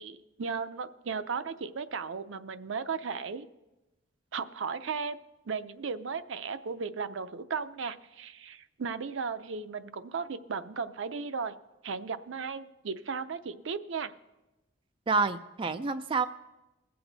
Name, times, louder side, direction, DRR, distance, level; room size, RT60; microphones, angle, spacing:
voice 1, 0.0-3.5 4.3-5.2 5.5-11.6 11.8-14.1, right 5 dB, 80° right, 11 dB, 0.6 m, -35 dB
voice 2, 15.1-16.3, right 4 dB, 25° right, 8 dB, 0.4 m, -28 dB
21.0 x 7.8 x 4.0 m, 1.0 s
head